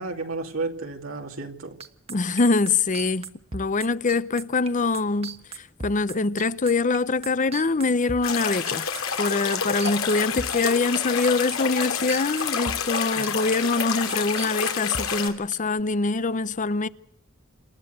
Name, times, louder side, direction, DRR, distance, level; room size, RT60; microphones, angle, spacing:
voice 1, 0.0-1.8 13.1-13.4, right 3 dB, 85° right, 2.6 m, -32 dB
sound 1, 1.8-11.6 11.8-15.8, right 4 dB, 30° right, 1.3 m, -37 dB
voice 2, 2.1-8.9 9.2-16.9, left 3 dB, 40° left, 0.7 m, -24 dB
sound 2, 8.2-15.3, left 6 dB, 90° left, 2.9 m, -28 dB
27.5 x 12.5 x 8.1 m
head